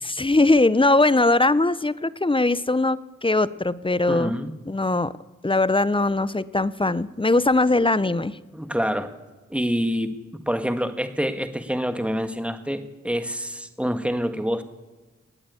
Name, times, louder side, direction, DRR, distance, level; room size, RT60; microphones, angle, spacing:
voice 1, 0.0-4.4 4.7-5.1 5.4-8.4, left 2 dB, 15° left, 17 dB, 0.7 m, -21 dB
voice 2, 4.1-4.5 8.5-9.1 9.5-10.1 10.5-14.6, equal, 5° right, 8 dB, 1.6 m, -26 dB
19.0 x 8.7 x 8.4 m, 1.2 s
cardioid pair, 45°, 31 cm